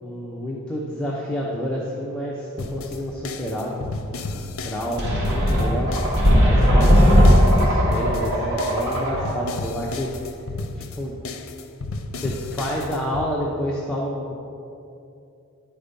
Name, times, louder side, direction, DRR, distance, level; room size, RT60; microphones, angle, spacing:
voice 1, 0.0-3.9 4.3-5.9 6.4-10.1 10.8-11.1 12.2-14.3, equal, 5° left, -4 dB, 0.6 m, -29 dB
sound 1, 2.6-13.3, left 3 dB, 75° left, 0.5 m, -33 dB
sound 2, 5.0-9.5, equal, 55° right, 1.9 m, -18 dB
10.0 x 4.3 x 5.3 m, 2.7 s
head